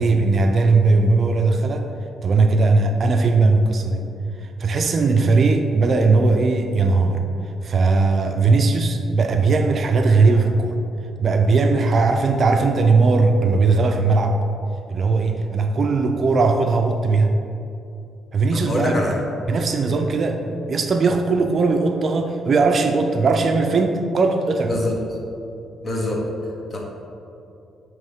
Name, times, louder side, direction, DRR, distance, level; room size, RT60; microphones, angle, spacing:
voice 1, 0.0-1.9 2.2-4.1 4.4-10.8 11.2-14.4 14.9-17.3 18.3-19.0 19.5-24.7, right 3 dB, 50° right, 5 dB, 0.4 m, -18 dB
voice 2, 18.5-19.1 24.7-24.9 25.8-26.2 26.7-26.8, left 1 dB, 35° left, -2 dB, 1.3 m, -24 dB
9.1 x 3.1 x 3.5 m, 2.7 s
cardioid pair, 90°, 0 cm